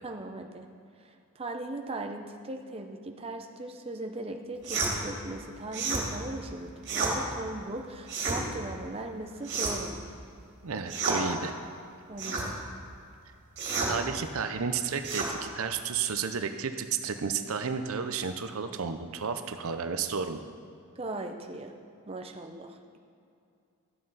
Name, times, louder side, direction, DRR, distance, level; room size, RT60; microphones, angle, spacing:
voice 1, 0.0-0.7 1.0-10.0 12.1-12.5 21.0-21.7 22.1-23.0, right 2 dB, 25° right, 4 dB, 0.6 m, -38 dB
sound 1, 4.6-4.9 5.7-6.0 6.8-7.1 8.0-8.4 9.4-9.9 10.9-11.2 12.2-12.5 13.6-13.9 15.0-15.3, right 4 dB, 50° right, 2.6 m, -30 dB
voice 2, 10.6-11.6 13.9-20.4, right 6 dB, 65° right, 8 dB, 0.6 m, -32 dB
12.0 x 7.8 x 5.6 m, 2.5 s
head